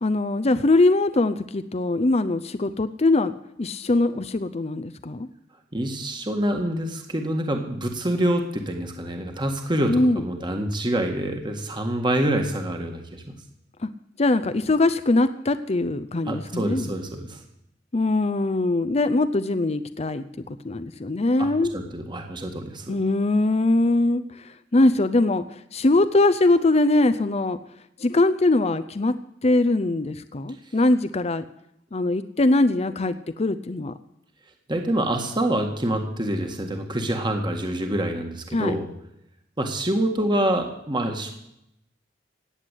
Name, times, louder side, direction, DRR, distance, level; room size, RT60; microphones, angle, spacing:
voice 1, 0.0-3.3 3.6-5.3 9.9-10.2 14.2-16.9 17.9-20.2 20.6-21.7 22.9-27.6 28.0-29.1 29.4-31.4 31.9-33.9 38.5-38.7, left 2 dB, 35° left, 12 dB, 0.6 m, -22 dB
voice 2, 5.7-13.2 16.3-17.4 21.4-23.0 34.7-38.9 39.6-41.3, right 1 dB, 25° right, 3 dB, 1.8 m, -26 dB
17.5 x 8.0 x 9.9 m, 0.79 s
head